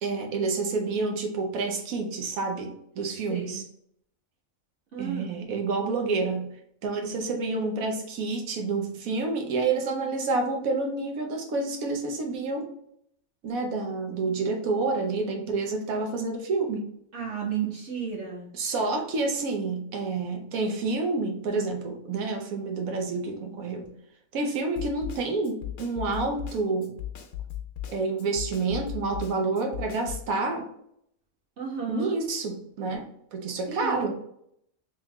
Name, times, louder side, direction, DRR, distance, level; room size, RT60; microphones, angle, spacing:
voice 1, 0.0-3.6 5.0-6.5 6.8-12.7 13.4-16.9 18.5-23.8 24.3-27.0 27.9-30.7 31.9-34.1, right 3 dB, 85° right, 3 dB, 1.2 m, -29 dB
voice 2, 3.3-3.6 4.9-5.4 17.1-18.5 31.6-32.2 33.7-34.1, right 7 dB, 60° right, -2 dB, 1.4 m, -33 dB
Snare drum, 24.8-30.3, left 11 dB, 70° left, 1.0 m, -37 dB
3.7 x 3.3 x 2.9 m, 0.71 s
omnidirectional pair, 1.4 m